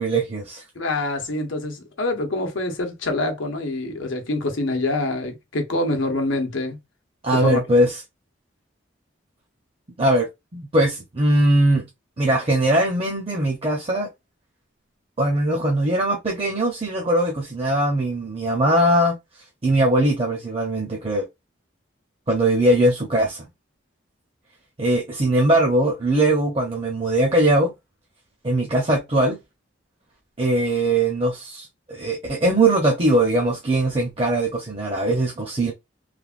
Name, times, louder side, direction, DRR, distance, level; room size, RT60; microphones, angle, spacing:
voice 1, 0.0-0.6 7.2-7.9 10.0-10.3 10.5-11.8 12.2-14.1 15.2-19.2 19.6-21.3 22.3-23.5 24.8-27.7 28.4-29.4 30.4-35.7, right 1 dB, 30° right, 0.5 m, -20 dB
voice 2, 0.7-6.8 7.3-7.6, left 2 dB, 80° left, 0.8 m, -25 dB
3.2 x 2.1 x 2.4 m
head